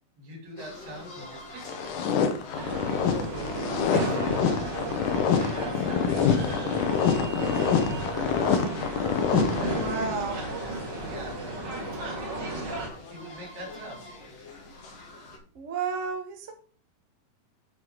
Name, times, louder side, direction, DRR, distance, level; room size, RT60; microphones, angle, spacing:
voice 1, 0.2-1.9 3.1-4.5 5.0-6.1 9.3-10.5 11.1-12.2 12.6-14.0, right 1 dB, 75° right, 0 dB, 5.1 m, -43 dB
sound 1, 0.6-15.4, left 2 dB, 50° left, 2.7 m, -46 dB
sound 2, 1.6-10.2, left 7 dB, 75° left, 2.5 m, -26 dB
sound 3, 2.5-12.9, right 1 dB, 35° right, 2.3 m, -33 dB
voice 2, 9.7-10.4 15.5-16.5, right 5 dB, 55° right, 3 dB, 0.8 m, -32 dB
7.8 x 7.8 x 3.9 m, 0.42 s
omnidirectional pair, 4.0 m